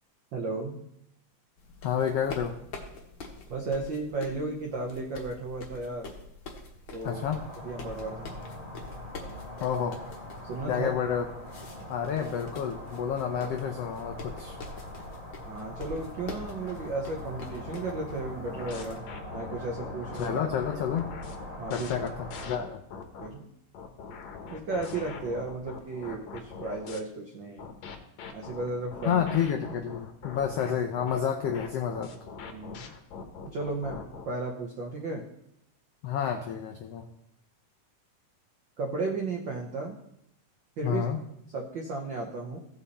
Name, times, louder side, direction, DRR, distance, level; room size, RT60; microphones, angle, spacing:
voice 1, 0.3-0.8 3.5-6.1 6.9-7.2 7.6-8.4 10.4-10.9 15.4-19.0 19.3-20.4 21.6-21.9 23.2-23.5 24.5-27.7 28.3-29.2 32.5-32.9 33.4-35.3 38.8-39.9 40.8-41.0 41.5-42.6, right 3 dB, 80° right, 1 dB, 1.0 m, -34 dB
sound 1, 1.6-19.0, left 3 dB, 50° left, 1.6 m, -46 dB
voice 2, 1.8-2.6 7.0-7.4 9.6-10.0 10.7-11.3 11.9-14.6 20.2-21.1 21.7-22.1 22.4-22.8 29.0-32.1 36.0-37.1 40.8-41.2, left 8 dB, 85° left, 4 dB, 1.3 m, -29 dB
sound 2, 7.0-22.5, left 1 dB, 15° left, 1.4 m, -42 dB
sound 3, 18.5-23.3 23.7-27.0 27.6-34.3, left 5 dB, 70° left, 2.1 m, -42 dB
16.0 x 5.6 x 4.2 m, 0.77 s
omnidirectional pair, 3.7 m